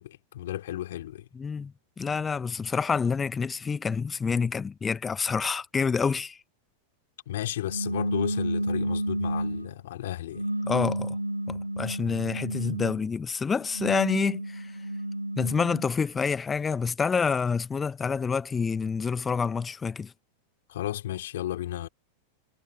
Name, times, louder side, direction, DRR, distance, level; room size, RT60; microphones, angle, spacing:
voice 1, 0.0-1.3 7.3-10.4 20.7-21.9, left 13 dB, 60° left, 2.7 m, -33 dB
voice 2, 1.3-6.4 10.6-11.2 11.5-14.7 15.4-20.1, left 5 dB, 15° left, 1.2 m, -28 dB
sound 1, 7.7-9.7 10.3-13.0 13.6-15.9, right 1 dB, 85° right, 0.9 m, -31 dB
figure-of-eight pair, 90°, 0 cm